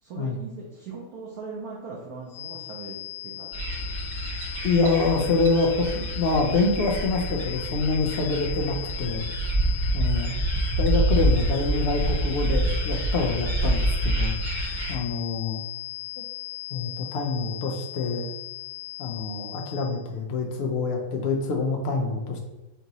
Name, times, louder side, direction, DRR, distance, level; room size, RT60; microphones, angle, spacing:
voice 1, 0.0-3.9, right 4 dB, 65° right, -4 dB, 1.2 m, -40 dB
sound 1, 2.3-20.0, left 17 dB, 55° left, 0.8 m, -38 dB
sound 2, 3.5-14.9, right 1 dB, 85° right, 0.4 m, -27 dB
voice 2, 4.6-9.3 9.9-10.4 10.8-14.4 14.9-15.6 16.7-18.3 19.0-22.4, left 3 dB, 80° left, 2 dB, 0.5 m, -26 dB
4.5 x 2.9 x 3.9 m, 1.1 s
omnidirectional pair, 1.8 m